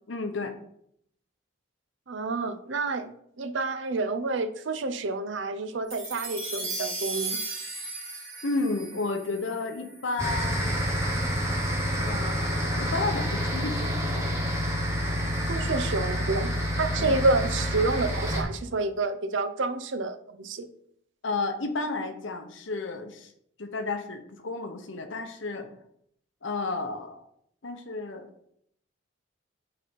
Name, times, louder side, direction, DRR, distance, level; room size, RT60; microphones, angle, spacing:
voice 1, 0.1-0.6 8.4-10.8 12.0-14.4 17.0-17.2 21.2-23.3 23.6-25.7 26.4-27.2 27.6-28.3, left 3 dB, 70° left, 6 dB, 0.8 m, -32 dB
voice 2, 2.1-7.4 15.5-20.7, right 3 dB, 65° right, 9 dB, 0.6 m, -29 dB
sound 1, 5.9-10.4, right 2 dB, 35° right, 2.5 m, -36 dB
sound 2, 10.2-18.4, equal, 15° right, 1.0 m, -28 dB
4.9 x 4.2 x 5.2 m, 0.71 s
head